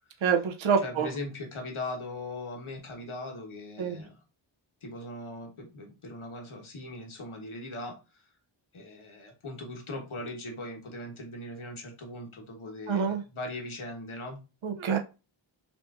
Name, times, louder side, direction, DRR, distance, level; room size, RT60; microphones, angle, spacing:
voice 1, 0.2-1.1 3.8-4.0 12.9-13.2 14.6-15.0, right 6 dB, 75° right, 5 dB, 0.6 m, -26 dB
voice 2, 0.8-4.2 4.8-8.2 8.7-14.4, left 2 dB, 80° left, 1 dB, 1.2 m, -39 dB
5.9 x 2.5 x 2.4 m, 0.30 s
wide cardioid pair, 55°, 48 cm